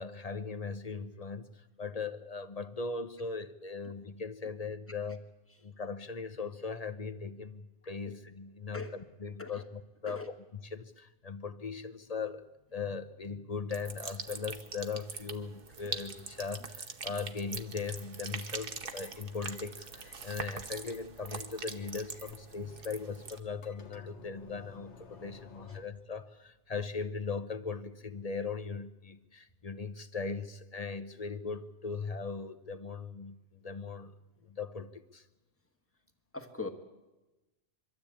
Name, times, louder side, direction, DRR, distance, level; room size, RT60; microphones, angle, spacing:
voice 1, 0.0-5.3 5.6-12.4 12.7-34.1 34.4-35.3, left 4 dB, 35° left, 11 dB, 0.7 m, -39 dB
sound 1, 13.7-23.4, right 5 dB, 50° right, 1.2 m, -43 dB
sound 2, 18.5-25.8, left 3 dB, 65° left, 1.6 m, -55 dB
voice 2, 36.3-36.7, left 4 dB, 10° left, 5 dB, 1.5 m, -40 dB
23.5 x 13.0 x 8.6 m, 1.1 s
omnidirectional pair, 1.3 m